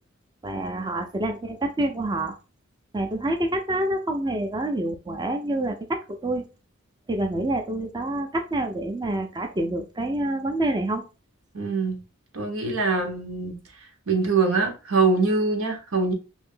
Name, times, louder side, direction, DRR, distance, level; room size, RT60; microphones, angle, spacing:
voice 1, 0.4-2.3 2.9-6.4 7.1-11.0, right 1 dB, 20° right, 0.4 m, -27 dB
voice 2, 11.5-12.0 12.3-13.6 14.1-16.1, right 4 dB, 90° right, 1.1 m, -23 dB
3.1 x 2.6 x 3.7 m
head